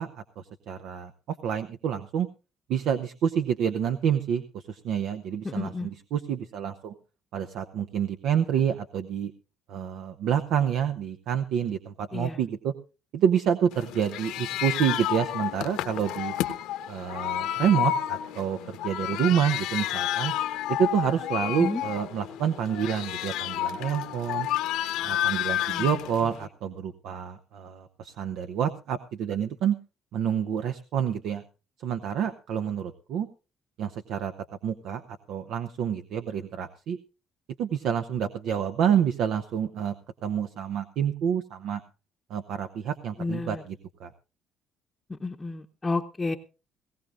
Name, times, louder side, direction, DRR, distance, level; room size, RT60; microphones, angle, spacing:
voice 1, 0.0-2.3 2.7-6.9 7.3-9.3 9.7-12.7 13.1-16.3 16.9-20.3 20.7-24.5 25.0-29.8 30.1-31.4 31.8-33.3 33.8-34.3 34.6-37.0 37.6-39.9 40.2-41.8 42.3-44.1, right 8 dB, 75° right, 8 dB, 0.8 m, -28 dB
voice 2, 5.4-5.9 12.1-12.4 21.6-21.8 25.7-25.9 43.2-43.6 45.1-46.4, left 3 dB, 20° left, 0 dB, 0.8 m, -31 dB
sound 1, 13.7-26.4, left 12 dB, 90° left, 1.2 m, -30 dB
19.0 x 16.5 x 2.5 m, 0.31 s
cardioid pair, 95°, 0 cm